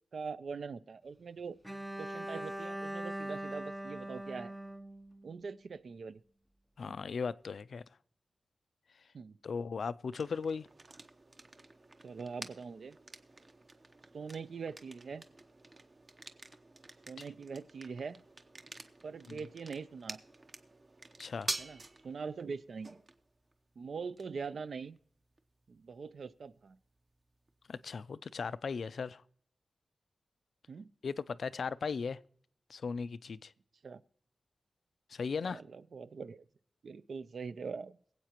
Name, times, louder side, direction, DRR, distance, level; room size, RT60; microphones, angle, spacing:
voice 1, 0.1-1.6 2.0-4.5 5.2-6.2 6.9-7.0 9.1-9.4 12.0-13.0 14.1-15.2 17.1-18.2 19.0-20.2 21.6-23.0 23.8-25.0 25.7-26.8 30.7-30.9 33.8-34.0 35.4-36.5 36.8-38.0, right 5 dB, 70° right, 0.5 m, -43 dB
Bowed string instrument, 1.6-5.7, right 1 dB, 5° right, 0.5 m, -42 dB
voice 2, 6.8-7.8 9.4-10.7 19.3-19.4 21.2-21.5 27.7-29.2 31.0-32.2 32.7-33.5 35.1-35.6, left 5 dB, 70° left, 0.4 m, -37 dB
sound 1, 10.1-27.9, right 2 dB, 35° right, 0.8 m, -49 dB
22.5 x 8.1 x 2.9 m
wide cardioid pair, 115°, 0 cm